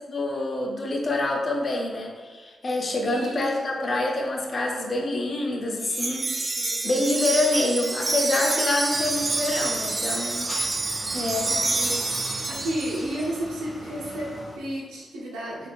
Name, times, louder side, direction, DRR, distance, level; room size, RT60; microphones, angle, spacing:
voice 1, 0.1-6.3 6.8-10.5 11.1-11.5, left 2 dB, 50° left, 1 dB, 0.6 m, -26 dB
voice 2, 3.0-3.7 4.8-5.0 6.6-6.9 10.8-12.0 12.5-15.7, right 1 dB, 90° right, -5 dB, 0.8 m, -33 dB
Wind chime, 5.8-13.3, right 2 dB, 35° right, 0.4 m, -28 dB
sound 1, 8.9-14.6, equal, 25° left, 1.0 m, -40 dB
3.6 x 3.4 x 2.4 m, 1.5 s
supercardioid pair, 45°, 0 cm